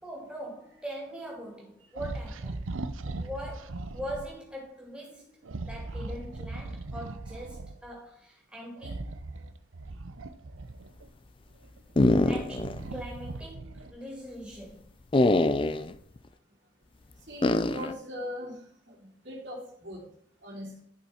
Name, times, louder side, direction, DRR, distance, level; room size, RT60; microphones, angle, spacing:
voice 1, 0.0-2.6 3.1-5.3 5.5-9.2 12.2-14.9, equal, 5° right, 2.3 m, -42 dB
sound 1, 1.9-4.3 5.4-7.8 8.8-11.1 11.6-14.0, right 2 dB, 80° right, 0.7 m, -39 dB
sound 2, 12.0-12.8 13.1-13.2 15.1-15.9 17.4-17.9, left 2 dB, 25° left, 0.4 m, -23 dB
voice 2, 17.3-18.5 18.9-19.0 19.2-20.0 20.4-20.8, left 1 dB, 65° right, 3.4 m, -39 dB
11.0 x 5.6 x 4.3 m
head